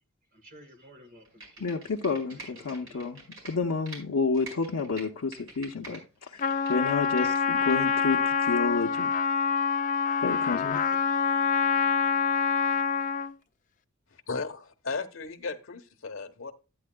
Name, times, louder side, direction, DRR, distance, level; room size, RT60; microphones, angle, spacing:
voice 1, 0.3-1.7 2.1-3.2 10.3-10.9, equal, 40° right, 1.6 m, -54 dB
Computer keyboard, 1.2-4.0 4.3-6.0 6.3-7.7 8.1-8.2, right 3 dB, 65° right, 4.8 m, -46 dB
voice 2, 1.6-9.1 10.2-10.8, left 4 dB, 90° left, 0.7 m, -30 dB
Trumpet, 6.4-13.3, left 6 dB, 35° left, 0.4 m, -26 dB
voice 3, 14.3-16.5, left 4 dB, 60° left, 1.0 m, -35 dB
11.5 x 9.5 x 2.2 m
head